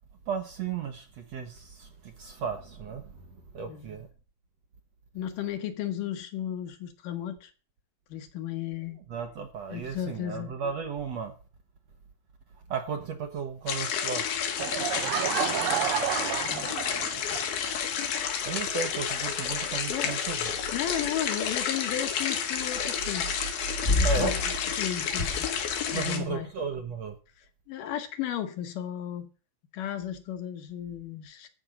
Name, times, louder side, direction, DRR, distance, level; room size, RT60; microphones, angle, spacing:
voice 1, 0.3-3.3 3.5-4.1 9.1-11.4 12.7-14.3 18.5-20.5 24.0-24.3 25.9-27.2, right 6 dB, 65° right, 1.8 m, -34 dB
voice 2, 3.7-4.0 5.1-7.5 8.1-9.0 9.7-10.5 16.5-16.7 19.9-20.2 20.7-23.3 23.9-25.5 25.9-26.5 27.4-29.3 29.7-31.5, left 10 dB, 70° left, 2.6 m, -34 dB
sound 1, 13.7-26.2, left 8 dB, 85° left, 3.6 m, -30 dB
Laughter / Crowd, 14.6-17.4, right 11 dB, 80° right, 1.5 m, -30 dB
sound 2, 23.8-24.6 25.1-26.0, left 3 dB, 35° left, 1.1 m, -28 dB
13.0 x 5.3 x 7.6 m
omnidirectional pair, 4.2 m